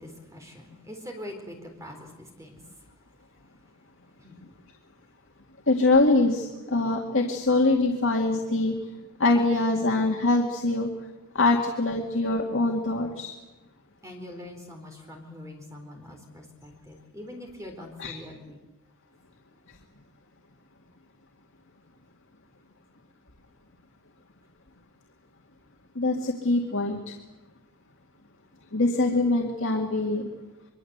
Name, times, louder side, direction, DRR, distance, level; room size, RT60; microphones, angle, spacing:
voice 1, 0.0-2.7 4.2-4.4 14.0-18.6, left 1 dB, 15° right, 3 dB, 4.0 m, -43 dB
voice 2, 5.7-8.7 9.2-10.9 11.4-13.3 18.0-18.1 26.0-27.0 28.7-30.2, left 2 dB, 60° left, 0 dB, 2.2 m, -23 dB
25.0 x 23.5 x 8.1 m, 1.1 s
head